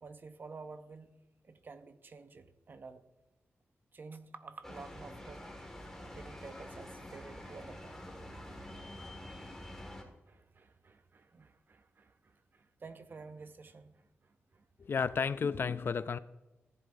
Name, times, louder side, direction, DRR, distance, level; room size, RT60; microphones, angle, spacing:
voice 1, 0.0-1.2 1.4-3.0 3.9-5.5 6.1-9.6 10.3-14.9, right 4 dB, 50° right, 10 dB, 0.7 m, -51 dB
sound 1, 4.6-10.0, left 1 dB, 5° left, 1.8 m, -47 dB
voice 2, 14.8-16.2, left 5 dB, 55° left, 15 dB, 0.3 m, -32 dB
15.0 x 10.5 x 2.6 m, 1.1 s
wide cardioid pair, 120°, 5 cm